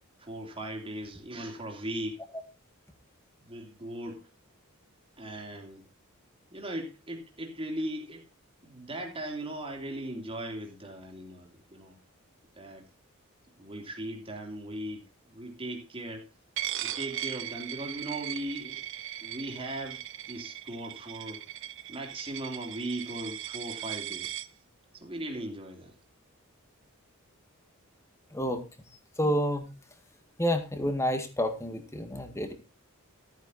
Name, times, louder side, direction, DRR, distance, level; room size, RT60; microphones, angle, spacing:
voice 1, 0.2-2.2 3.4-4.3 5.2-5.9 6.5-8.3 8.6-12.0 12.6-12.9 13.6-16.3 16.8-18.8 19.2-21.4 21.9-24.4 24.9-25.9, right 1 dB, 25° right, 3.1 m, -38 dB
Coin (dropping), 16.6-24.5, right 12 dB, 60° right, 0.9 m, -38 dB
voice 2, 28.3-28.6 29.2-29.7 30.4-32.5, equal, 15° left, 1.9 m, -29 dB
14.0 x 9.4 x 4.1 m
head